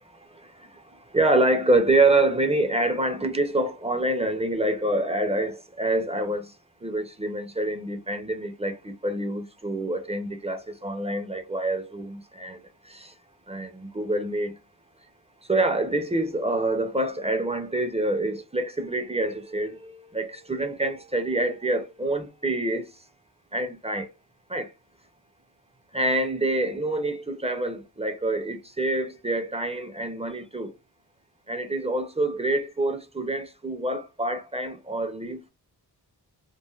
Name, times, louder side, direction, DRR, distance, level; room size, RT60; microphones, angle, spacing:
voice 1, 0.3-6.5 6.8-13.1 13.5-14.5 15.5-22.9 23.5-24.1 24.5-24.7 25.9-30.7 31.5-35.5, right 2 dB, 15° right, 0.5 m, -26 dB
3.1 x 2.4 x 2.3 m
wide cardioid pair, 85°, 39 cm